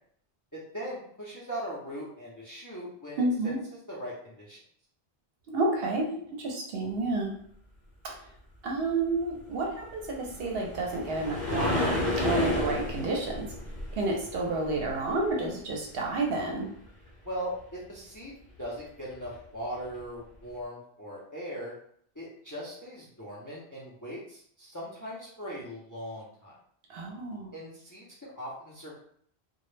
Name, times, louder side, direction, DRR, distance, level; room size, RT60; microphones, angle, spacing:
voice 1, 0.5-4.6 17.2-18.3 18.6-21.7 22.2-26.5 27.5-28.9, equal, 25° left, -6 dB, 0.4 m, -39 dB
voice 2, 3.2-3.6 5.5-7.3 8.0-8.1 8.6-13.5 13.9-16.7 26.9-27.5, right 2 dB, 70° right, 0 dB, 0.8 m, -30 dB
sound 1, 10.1-15.3 19.2-19.3 19.9-20.0, left 1 dB, 50° left, 0.8 m, -31 dB
2.2 x 2.0 x 3.1 m, 0.63 s
omnidirectional pair, 1.1 m